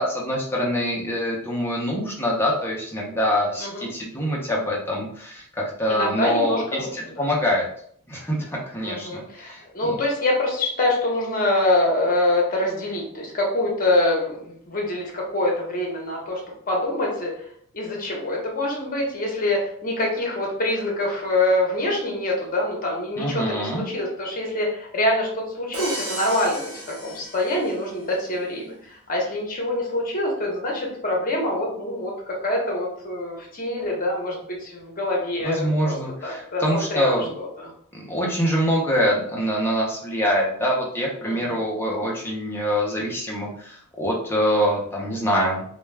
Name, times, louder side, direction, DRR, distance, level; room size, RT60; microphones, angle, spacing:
voice 1, 0.0-7.7 8.1-10.0 23.2-23.8 35.4-37.2 37.9-45.6, equal, 10° left, -3 dB, 0.6 m, -25 dB
voice 2, 5.9-7.3 8.8-16.4 16.7-17.3 17.7-26.7 27.0-36.0 36.2-36.6 36.9-37.7 41.2-41.6, left 1 dB, 40° left, -1 dB, 0.8 m, -25 dB
Crash cymbal, 25.7-27.9, right 1 dB, 80° right, 0.8 m, -34 dB
2.3 x 2.2 x 3.2 m, 0.63 s
head